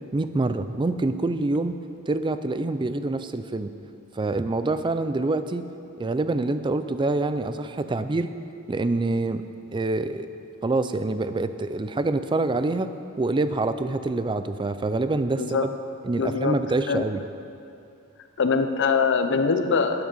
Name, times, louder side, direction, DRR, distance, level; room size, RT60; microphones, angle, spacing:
voice 1, 0.1-1.8 2.1-3.7 4.1-5.7 6.0-8.3 8.7-9.5 9.7-10.3 10.6-12.9 13.2-15.7 16.0-17.2, right 2 dB, 20° right, 11 dB, 0.4 m, -26 dB
voice 2, 16.2-16.6 16.9-17.0 18.4-20.0, left 5 dB, 55° left, 8 dB, 0.7 m, -23 dB
12.5 x 8.9 x 5.4 m, 2.6 s
head